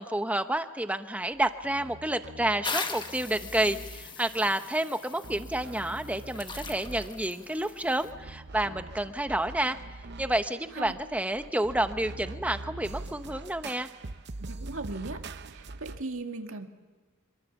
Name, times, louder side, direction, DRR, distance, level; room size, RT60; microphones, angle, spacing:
voice 1, 0.0-9.8 10.2-13.9, right 1 dB, 5° right, 9 dB, 0.9 m, -29 dB
sound 1, 1.3-4.4 5.2-16.0, right 2 dB, 50° right, 0.7 m, -44 dB
sound 2, 2.6-8.1, left 4 dB, 20° left, 1.2 m, -40 dB
voice 2, 14.4-15.2 15.5-16.7, right 3 dB, 65° right, 4 dB, 2.1 m, -38 dB
26.0 x 23.5 x 7.2 m, 1.4 s
head